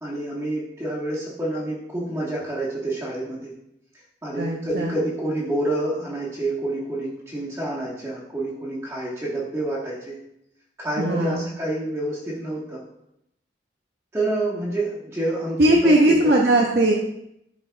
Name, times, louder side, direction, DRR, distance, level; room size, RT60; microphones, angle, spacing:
voice 1, 0.0-3.5 4.2-10.2 10.8-12.8 14.1-15.9 16.2-16.3, right 1 dB, 15° right, -8 dB, 1.3 m, -28 dB
voice 2, 4.4-4.9 11.0-11.5 15.6-16.9, right 1 dB, 65° right, -1 dB, 0.7 m, -19 dB
11.5 x 4.0 x 2.3 m, 0.80 s
head